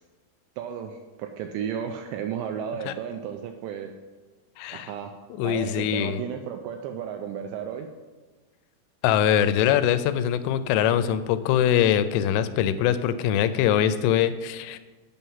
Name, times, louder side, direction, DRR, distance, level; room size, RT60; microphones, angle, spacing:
voice 1, 0.6-3.9 4.7-5.1 5.4-7.9, right 8 dB, 85° right, 4 dB, 2.6 m, -33 dB
voice 2, 4.6-4.9 5.3-6.2 9.0-14.8, left 10 dB, 90° left, 12 dB, 3.1 m, -23 dB
9.2 x 5.7 x 5.6 m, 1.3 s
omnidirectional pair, 5.6 m